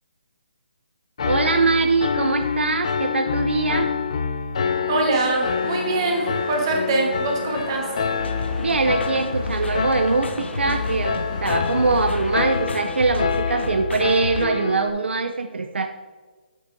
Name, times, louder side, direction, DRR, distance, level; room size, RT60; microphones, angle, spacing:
Piano, 1.2-14.9, left 6 dB, 30° left, 0.4 m, -27 dB
voice 1, 1.2-3.9 8.6-15.9, right 4 dB, 80° right, 6 dB, 0.5 m, -22 dB
voice 2, 4.9-7.8, right 2 dB, 25° right, 0 dB, 1.3 m, -23 dB
sound 1, 5.2-13.2, equal, 5° left, 1.0 m, -37 dB
sound 2, 8.2-14.5, left 4 dB, 85° left, 0.7 m, -30 dB
8.4 x 8.3 x 2.7 m, 1.4 s
hypercardioid pair, 175°, 6 cm